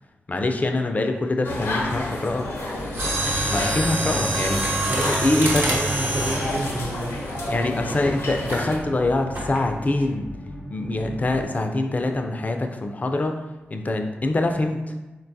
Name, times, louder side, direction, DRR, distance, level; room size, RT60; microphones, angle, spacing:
voice 1, 0.3-2.5 3.5-5.8 7.5-10.3 10.7-13.4 13.7-15.0, left 2 dB, 35° left, 4 dB, 0.4 m, -24 dB
sound 1, 1.4-8.8, left 1 dB, 80° left, 0.6 m, -31 dB
sound 2, 2.8-11.4, left 1 dB, 85° right, 0.7 m, -37 dB
Mechanisms, 2.9-7.9 8.5-8.7 9.3-9.7 10.0-10.1, right 2 dB, 55° right, 1.0 m, -26 dB
voice 2, 4.6-7.2, right 2 dB, 35° right, 6 dB, 0.3 m, -31 dB
3.8 x 2.2 x 2.6 m, 1.1 s
cardioid pair, 50°, 5 cm